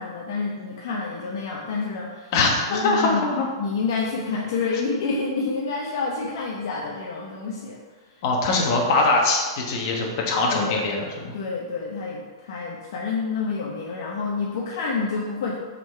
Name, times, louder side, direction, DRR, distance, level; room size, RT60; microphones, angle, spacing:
voice 1, 0.0-2.3 2.7-3.2 3.6-7.8 8.2-8.3 10.5-10.8 11.3-15.6, left 4 dB, 55° left, -2 dB, 0.8 m, -28 dB
voice 2, 2.3-3.5 8.2-11.0 11.2-11.3, left 3 dB, 40° left, 0 dB, 1.2 m, -22 dB
5.9 x 3.9 x 4.5 m, 1.4 s
hypercardioid pair, 165°, 3 cm